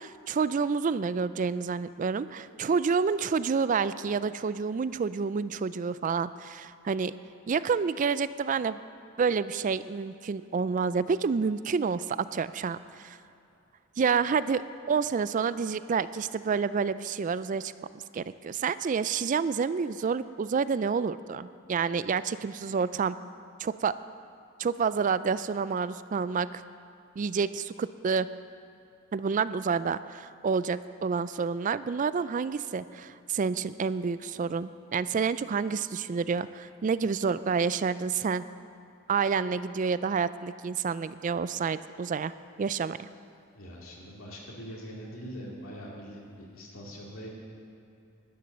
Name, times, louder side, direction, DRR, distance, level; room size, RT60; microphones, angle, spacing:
voice 1, 0.0-7.1 7.5-8.8 9.2-13.2 14.0-14.6 14.9-23.2 23.6-23.9 24.6-26.6 27.2-28.3 29.1-38.4 39.1-42.3 42.6-43.1, right 5 dB, 40° right, 15 dB, 0.3 m, -29 dB
voice 2, 43.5-47.3, equal, 80° left, -4 dB, 2.4 m, -43 dB
12.0 x 9.9 x 6.6 m, 2.7 s
head